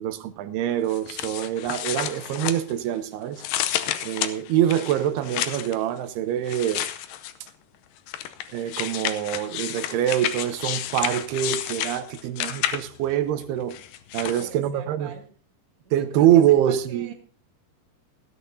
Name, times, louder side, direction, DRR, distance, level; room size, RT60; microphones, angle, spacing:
voice 1, 0.0-3.4 4.0-6.8 8.5-13.7 14.1-15.1 15.9-17.1, right 11 dB, 90° right, 2.8 m, -24 dB
sound 1, 0.9-3.0 3.4-5.8 6.5-7.5 8.1-13.1 13.7-14.5, left 12 dB, 75° left, 2.1 m, -30 dB
voice 2, 14.1-15.3 15.8-17.1, right 5 dB, 40° right, 2.8 m, -44 dB
19.0 x 13.0 x 2.7 m
omnidirectional pair, 4.5 m